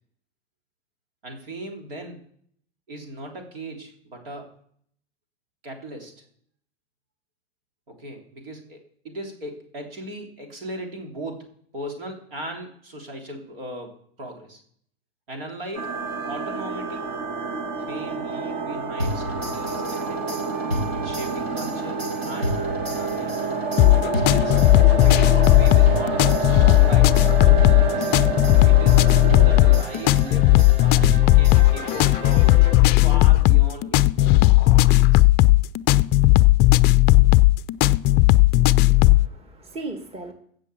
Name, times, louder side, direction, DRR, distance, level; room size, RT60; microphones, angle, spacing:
voice 1, 1.2-2.2 2.9-4.5 5.6-6.2 7.9-14.6 15.3-16.0 16.3-17.0 17.9-20.5 20.9-22.5 22.9-23.6 23.9-24.6 25.0-28.2 28.6-32.5 32.9-35.3, right 1 dB, 70° right, 3 dB, 3.5 m, -38 dB
sound 1, 15.7-29.8, right 4 dB, 40° right, 1.6 m, -28 dB
sound 2, 19.0-33.1, equal, 90° right, 3.7 m, -32 dB
sound 3, 23.8-39.3, left 19 dB, 35° left, 0.5 m, -16 dB
voice 2, 38.8-40.3, right 2 dB, 20° right, 5 dB, 2.0 m, -37 dB
16.5 x 6.4 x 7.0 m, 0.64 s
figure-of-eight pair, 85°, 30 cm